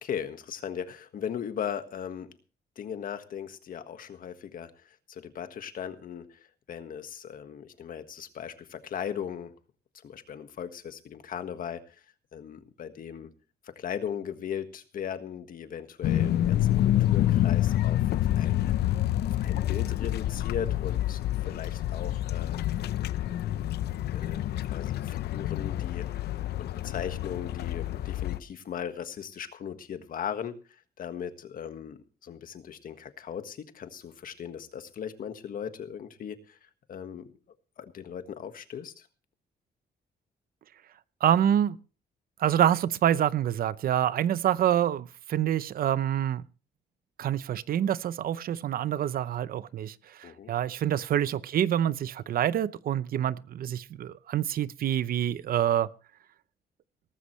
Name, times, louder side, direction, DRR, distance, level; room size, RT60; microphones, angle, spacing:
voice 1, 0.0-2.3 2.8-9.5 10.0-12.0 12.3-13.3 13.6-18.7 19.2-22.6 23.3-23.7 24.1-24.4 24.7-26.1 26.6-37.3 37.8-39.1 50.2-50.5, left 8 dB, 60° left, 1.6 m, -38 dB
sound 1, 16.0-28.4, left 13 dB, 80° left, 0.7 m, -28 dB
voice 2, 41.2-41.8 42.4-46.4 47.2-55.9, right 10 dB, 65° right, 0.7 m, -26 dB
18.5 x 14.5 x 3.2 m
cardioid pair, 135°, 16 cm